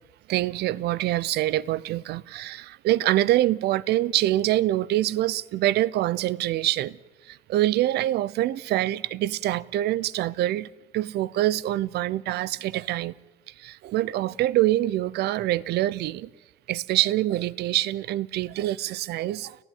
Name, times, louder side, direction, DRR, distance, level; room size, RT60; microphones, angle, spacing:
voice 1, 0.3-7.0 7.3-10.7 10.9-13.1 13.5-16.3 16.7-19.6, right 14 dB, 75° right, 0.8 m, -25 dB
29.5 x 16.0 x 9.4 m
cardioid pair, 110°, 17 cm